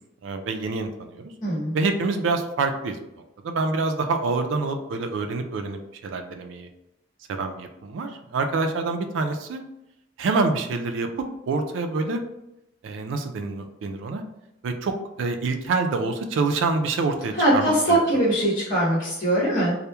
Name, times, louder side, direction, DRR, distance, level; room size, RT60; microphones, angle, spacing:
voice 1, 0.2-1.3 1.7-3.0 3.4-6.7 7.3-9.6 10.2-12.2 12.8-14.2 14.6-18.2, right 3 dB, 75° right, 6 dB, 0.3 m, -26 dB
voice 2, 1.4-1.8 17.3-19.8, right 1 dB, 40° left, -9 dB, 0.9 m, -21 dB
2.9 x 2.0 x 2.2 m, 0.88 s
head